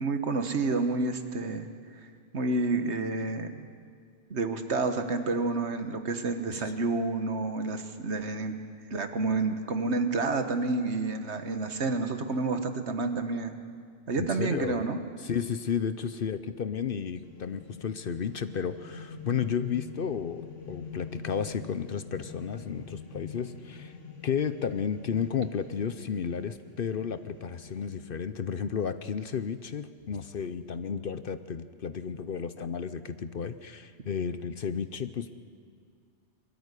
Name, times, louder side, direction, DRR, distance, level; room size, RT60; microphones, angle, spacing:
voice 1, 0.0-1.7 2.3-3.7 4.3-8.5 8.9-13.5 14.1-15.0, right 3 dB, 65° right, 8 dB, 1.6 m, -29 dB
voice 2, 14.2-14.8 15.2-24.0 24.2-35.3, left 7 dB, 55° left, 12 dB, 0.8 m, -33 dB
sound 1, 17.2-28.0, left 5 dB, 85° left, 2.3 m, -46 dB
22.5 x 13.5 x 9.8 m, 2.2 s
omnidirectional pair, 1.2 m